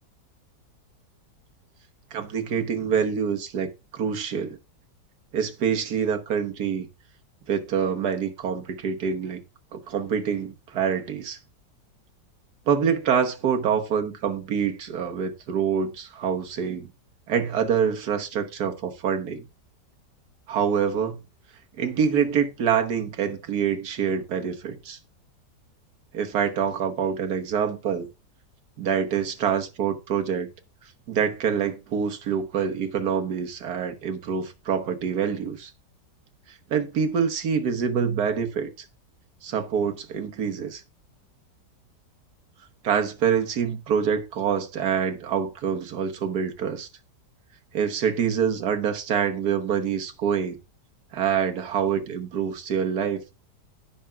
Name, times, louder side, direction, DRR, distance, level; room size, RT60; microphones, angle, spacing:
voice 1, 2.1-4.6 5.3-6.9 7.5-9.4 9.7-11.4 12.7-16.9 17.3-19.4 20.5-21.2 21.8-25.0 26.1-28.1 28.8-30.5 31.1-35.7 36.5-38.9 39.4-40.8 42.8-46.9 47.7-50.6 51.1-53.2, right 7 dB, 65° right, 1.6 m, -26 dB
16.0 x 5.7 x 2.4 m
omnidirectional pair, 1.9 m